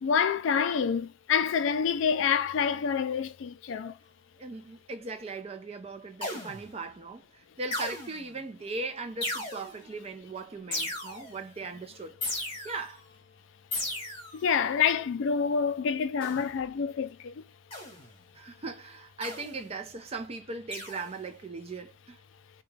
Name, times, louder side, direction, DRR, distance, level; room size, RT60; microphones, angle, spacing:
voice 1, 0.0-3.9 14.4-17.3, left 6 dB, 60° left, 0.3 m, -27 dB
voice 2, 4.4-12.2 12.6-13.0 18.3-22.2, right 3 dB, 30° right, 0.4 m, -39 dB
sound 1, 6.2-6.8 7.7-8.4 9.2-9.9 10.7-11.4 12.2-13.0 13.7-14.5 16.2-16.6 17.7-18.2 19.2-19.7 20.7-21.2, left 1 dB, 25° left, 1.0 m, -36 dB
2.4 x 2.2 x 3.1 m
head